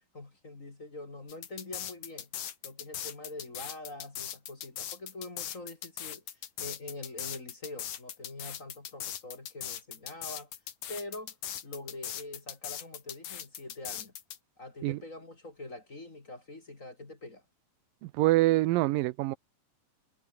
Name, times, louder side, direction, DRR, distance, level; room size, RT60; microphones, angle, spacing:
voice 1, 0.1-2.3 2.6-6.2 6.6-10.5 10.9-11.4 11.6-14.1 14.6-17.4, left 2 dB, 25° left, 2.7 m, -44 dB
sound 1, 1.3-14.4, left 10 dB, 75° left, 3.5 m, -39 dB
voice 2, 18.0-19.4, right 18 dB, 85° right, 2.4 m, -25 dB
omnidirectional pair, 3.9 m